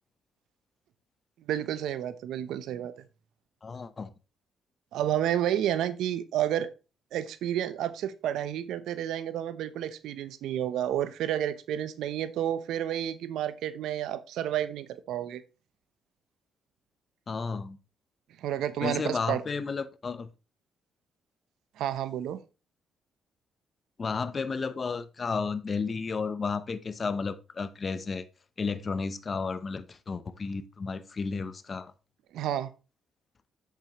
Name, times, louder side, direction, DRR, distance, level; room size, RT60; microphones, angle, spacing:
voice 1, 1.5-2.9 4.9-6.7 7.1-15.4 18.4-19.4 21.8-22.4 32.3-32.7, right 11 dB, 80° right, 0.8 m, -30 dB
voice 2, 3.6-4.1 17.3-17.8 18.8-20.3 24.0-28.3 28.6-31.9, left 4 dB, 35° left, 0.8 m, -32 dB
8.2 x 7.7 x 3.1 m
cardioid pair, 90°, 0 cm